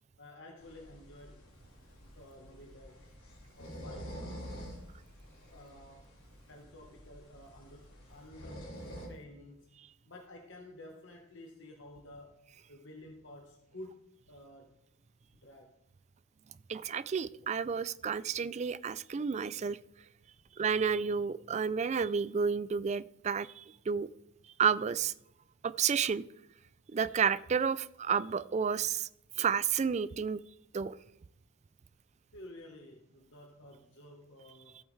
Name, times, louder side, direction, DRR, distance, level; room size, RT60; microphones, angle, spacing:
voice 1, 0.2-1.4 2.1-3.0 3.6-4.2 5.5-6.1 6.5-8.7 9.1-9.8 10.0-14.8 15.3-15.7 32.3-34.8, left 1 dB, 60° left, 1 dB, 1.3 m, -52 dB
sound 1, 0.6-9.1, equal, 80° left, 4.0 m, -48 dB
voice 2, 16.7-19.8 20.6-24.1 24.6-25.1 25.6-26.2 26.9-29.1 29.4-30.4 30.7-31.0, right 6 dB, 30° right, 17 dB, 0.3 m, -31 dB
14.0 x 8.0 x 3.3 m, 0.83 s
head